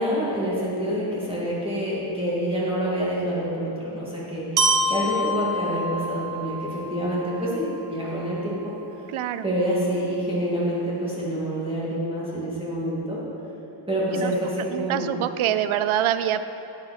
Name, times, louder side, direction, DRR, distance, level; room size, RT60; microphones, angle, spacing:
voice 1, 0.0-8.7 9.4-13.2 13.9-15.1, equal, 10° right, -7 dB, 2.5 m, -27 dB
Glockenspiel, 4.6-8.5, right 1 dB, 40° right, 1.1 m, -27 dB
voice 2, 9.1-9.5 14.1-14.3 14.7-16.5, right 10 dB, 90° right, 12 dB, 0.6 m, -25 dB
11.5 x 8.9 x 4.4 m, 2.9 s
wide cardioid pair, 160°, 48 cm